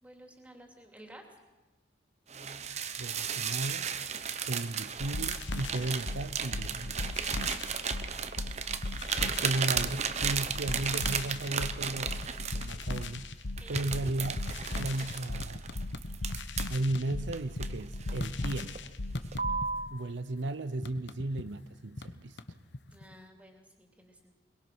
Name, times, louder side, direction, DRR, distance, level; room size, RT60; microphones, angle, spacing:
voice 1, 0.0-1.2 13.6-14.1 22.9-24.3, right 1 dB, 10° right, 2.9 m, -53 dB
sound 1, 2.3-13.1 13.6-16.8 17.3-18.2 18.6-18.9 19.3-19.9, right 7 dB, 35° right, 0.9 m, -34 dB
voice 2, 3.0-3.9 4.4-7.0 9.4-12.2 12.5-13.3 13.7-14.4 14.8-15.7 16.7-18.9 19.9-22.4, right 2 dB, 80° right, 0.7 m, -35 dB
sound 2, 5.0-19.7, left 2 dB, 90° left, 1.1 m, -37 dB
sound 3, 9.8-10.2 10.5-11.5 11.8-12.3 12.6-16.4 16.7-18.8 19.1-20.0 20.3-23.1, left 2 dB, 70° left, 1.1 m, -42 dB
22.0 x 22.0 x 6.2 m
head